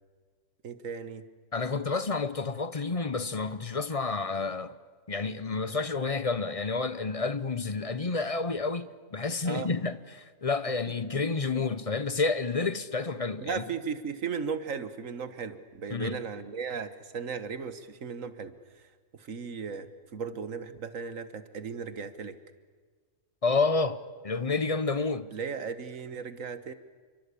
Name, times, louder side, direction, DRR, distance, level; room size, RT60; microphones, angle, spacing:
voice 1, 0.6-1.3 9.4-9.7 11.0-11.7 13.4-18.5 19.1-22.4 25.3-26.7, right 6 dB, 90° right, 1.7 m, -36 dB
voice 2, 1.5-4.7 5.1-13.6 15.9-16.2 23.4-25.3, left 4 dB, 30° left, 0.8 m, -30 dB
28.5 x 24.0 x 8.5 m
omnidirectional pair, 1.3 m